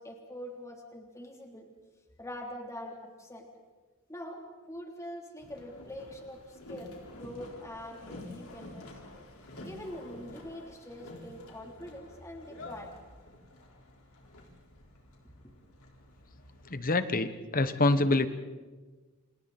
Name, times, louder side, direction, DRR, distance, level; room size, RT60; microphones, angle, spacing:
voice 1, 0.0-1.7 2.2-3.5 4.1-4.4 4.7-8.9 9.6-12.9, left 1 dB, 15° left, 1 dB, 3.4 m, -44 dB
Boat Water vehicle, 5.4-16.8, left 1 dB, 80° left, 4.5 m, -49 dB
voice 2, 16.7-18.3, left 2 dB, 40° left, 11 dB, 1.3 m, -26 dB
29.5 x 27.5 x 4.3 m, 1.3 s
head